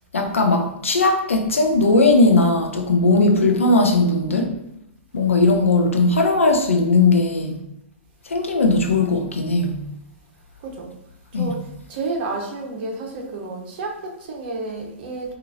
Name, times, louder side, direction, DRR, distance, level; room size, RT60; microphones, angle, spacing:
voice 1, 0.1-4.5 5.1-7.6 8.3-9.8 11.3-11.6, left 3 dB, 85° left, 4 dB, 0.6 m, -18 dB
voice 2, 3.3-3.6 10.6-10.9 11.3-15.3, right 3 dB, 50° right, 1 dB, 0.9 m, -31 dB
4.2 x 2.5 x 2.7 m, 0.84 s
hypercardioid pair, 115°, 7 cm